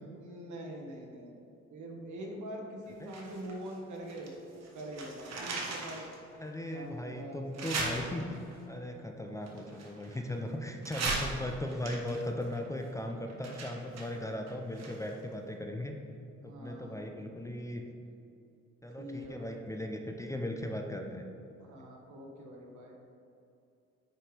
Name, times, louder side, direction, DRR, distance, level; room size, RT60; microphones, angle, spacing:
voice 1, 0.2-6.0 6.7-7.6 8.0-8.2 16.4-17.1 19.0-19.7 21.6-23.0, right 1 dB, 75° right, 0 dB, 1.5 m, -44 dB
sound 1, 3.1-4.3 4.6-6.2 6.7-6.8 7.5-8.6 9.4-10.4 10.8-15.2 15.5-15.6, right 3 dB, 60° right, 1.3 m, -38 dB
voice 2, 6.4-8.4 8.7-16.0 16.4-17.8 18.8-21.3, left 1 dB, 10° left, 3 dB, 0.5 m, -38 dB
9.1 x 4.9 x 3.3 m, 2.6 s
cardioid pair, 90°, 30 cm